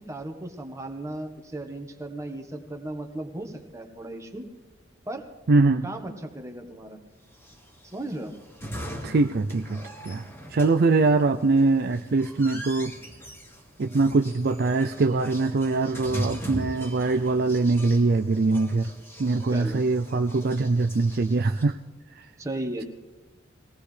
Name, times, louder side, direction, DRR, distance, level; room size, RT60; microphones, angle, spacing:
voice 1, 0.0-4.5 5.1-5.2 5.8-7.0 7.9-8.3 19.5-19.8 22.4-22.8, right 1 dB, 15° right, 4 dB, 1.3 m, -35 dB
voice 2, 5.5-5.8 9.0-9.8 10.1-10.2 10.5-12.9 13.8-18.9 19.2-21.8, right 3 dB, 50° right, 7 dB, 0.4 m, -22 dB
sound 1, 7.3-21.6, equal, 10° left, 2.2 m, -40 dB
21.5 x 18.0 x 3.3 m, 1.2 s
head